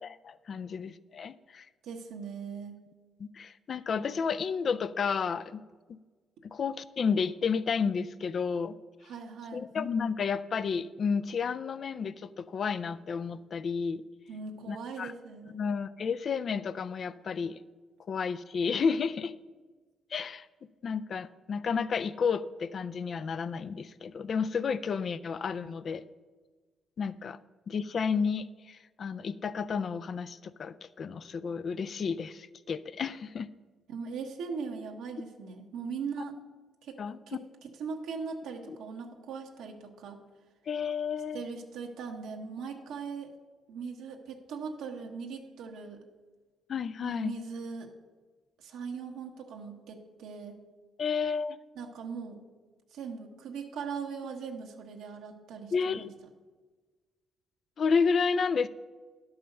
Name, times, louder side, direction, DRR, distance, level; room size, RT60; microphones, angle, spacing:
voice 1, 0.0-1.7 3.2-5.6 6.5-8.8 9.5-14.0 14.7-15.1 15.5-17.6 18.1-19.3 20.1-20.5 20.8-26.1 27.0-27.4 27.7-33.5 37.0-37.2 40.7-41.5 46.7-47.4 51.0-51.6 55.7-56.2 57.8-58.7, left 5 dB, 50° left, 14 dB, 0.4 m, -31 dB
voice 2, 1.8-2.8 9.0-9.6 14.3-15.6 33.9-36.4 36.8-37.0 37.3-37.4 37.8-40.2 41.3-43.3 43.7-46.1 47.0-47.9 48.6-50.6 51.8-52.4 52.9-56.1, right 5 dB, 85° right, 1 dB, 1.1 m, -40 dB
11.5 x 5.5 x 6.6 m, 1.4 s
cardioid pair, 90°, 0 cm